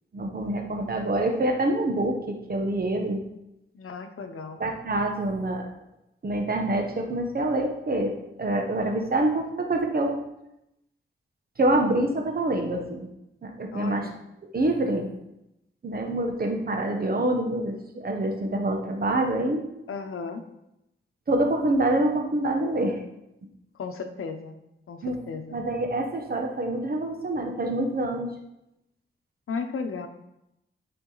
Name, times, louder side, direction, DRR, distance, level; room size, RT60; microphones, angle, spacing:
voice 1, 0.1-3.2 4.6-5.7 6.2-10.2 11.6-13.1 13.4-14.1 14.5-15.1 15.8-19.6 21.3-23.0 25.0-25.2 25.5-28.3, right 1 dB, 45° right, 2 dB, 1.1 m, -26 dB
voice 2, 3.7-4.6 13.7-14.2 19.9-20.4 23.7-24.6 24.9-25.6 29.5-30.1, left 5 dB, 85° left, 7 dB, 0.9 m, -35 dB
11.5 x 5.0 x 4.0 m, 0.87 s
wide cardioid pair, 120°, 21 cm